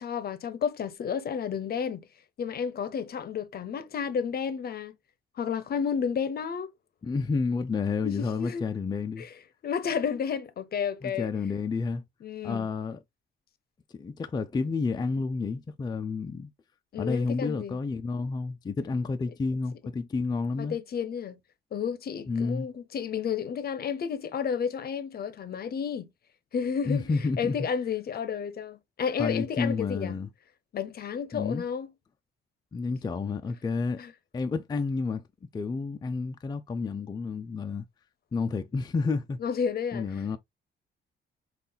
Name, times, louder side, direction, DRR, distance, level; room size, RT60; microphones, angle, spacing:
voice 1, 0.0-2.0 2.4-5.0 5.4-6.7 8.0-8.6 9.2-9.3 9.6-11.3 12.2-12.7 16.9-17.8 20.6-21.4 21.7-26.1 26.5-27.0 27.4-30.2 30.7-31.9 34.0-34.1 39.4-40.4, left 7 dB, 50° left, 0.7 m, -31 dB
voice 2, 7.0-9.3 11.0-12.0 12.4-13.0 13.9-16.5 17.0-20.8 22.3-22.7 26.9-27.5 29.2-30.3 31.3-31.6 32.7-34.0 34.3-35.2 35.5-37.8 38.3-39.4 39.9-40.4, left 4 dB, 20° left, 0.4 m, -30 dB
5.3 x 2.4 x 2.3 m
cardioid pair, 90°, 20 cm